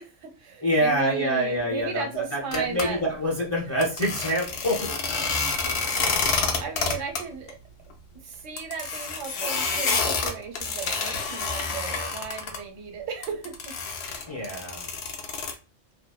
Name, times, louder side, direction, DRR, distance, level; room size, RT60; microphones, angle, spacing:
voice 1, 0.0-3.1 5.6-7.6 8.2-13.7 14.0-14.3, right 6 dB, 85° right, 5 dB, 1.0 m, -36 dB
voice 2, 0.6-4.9 14.3-15.0, equal, 15° left, -2 dB, 0.6 m, -26 dB
sound 1, 2.5-2.8 3.8-7.2 7.5-7.6 7.9-8.0 8.6-12.6 13.2-15.5, left 4 dB, 70° left, 0.8 m, -28 dB
2.5 x 2.1 x 2.3 m, 0.33 s
omnidirectional pair, 1.3 m